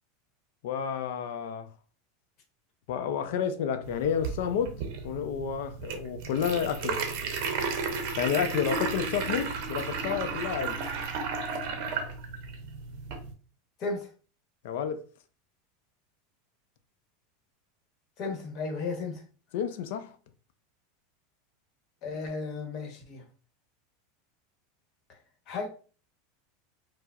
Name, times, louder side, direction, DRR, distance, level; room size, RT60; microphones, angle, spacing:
voice 1, 0.6-1.7 2.9-7.0 8.2-10.8 14.6-15.0 19.5-20.2, left 8 dB, 75° left, 0.4 m, -30 dB
sound 1, 3.8-13.3, right 4 dB, 60° right, 0.6 m, -34 dB
voice 2, 13.8-14.1 18.2-19.2 22.0-23.2 25.1-25.2 25.5-25.7, left 4 dB, 45° left, 1.0 m, -34 dB
4.5 x 2.0 x 2.3 m
supercardioid pair, 130°, 0 cm